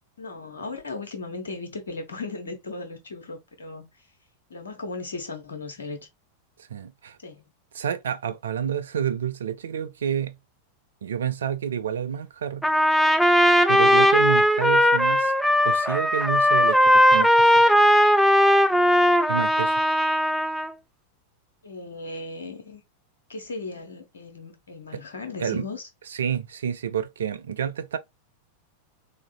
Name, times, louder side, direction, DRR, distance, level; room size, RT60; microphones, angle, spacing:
voice 1, 0.2-3.9 4.5-6.1 7.2-7.4 21.6-22.8 23.3-25.8, left 3 dB, 70° left, 1.1 m, -36 dB
voice 2, 6.7-7.2 7.7-10.3 11.0-12.6 13.7-15.3 15.6-17.6 19.3-19.7 24.9-25.0 25.4-25.7 26.1-28.0, right 8 dB, 65° right, 0.4 m, -29 dB
Trumpet, 12.6-20.7, equal, ahead, 0.4 m, -18 dB
3.7 x 3.1 x 2.3 m
figure-of-eight pair, 90°, 0 cm